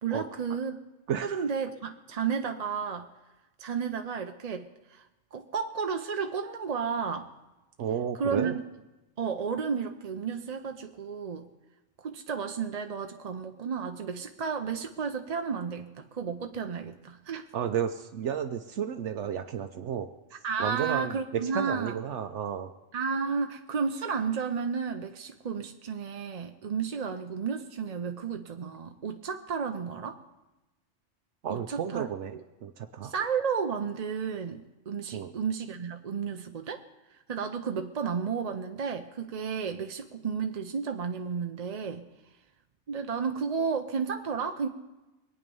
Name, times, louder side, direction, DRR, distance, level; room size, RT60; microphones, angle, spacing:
voice 1, 0.0-0.8 1.2-3.1 3.6-5.1 5.3-7.3 8.2-8.5 9.2-11.5 12.0-17.5 20.4-22.0 22.9-30.2 31.5-32.1 32.3-32.4 33.0-36.8 37.3-42.0 42.9-44.7, right 6 dB, 45° right, 6 dB, 0.6 m, -32 dB
voice 2, 1.1-1.4 7.8-8.6 17.5-20.1 20.6-22.7 31.4-33.1 35.1-35.3, right 8 dB, 75° right, 7 dB, 1.0 m, -32 dB
22.0 x 9.0 x 5.4 m, 1.1 s
omnidirectional pair, 1.2 m